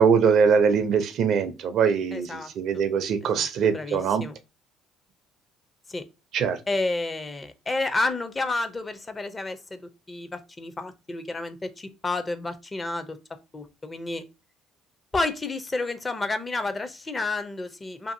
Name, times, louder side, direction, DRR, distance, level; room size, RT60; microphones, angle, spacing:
voice 1, 0.0-4.2 6.3-6.6, right 6 dB, 60° right, 0.4 m, -22 dB
voice 2, 2.1-2.5 3.2-4.4 5.9-6.0 6.7-9.8 10.1-13.2 13.5-14.2 15.1-18.1, left 2 dB, 25° left, 0.5 m, -30 dB
2.6 x 2.5 x 2.6 m
supercardioid pair, 85°, 0 cm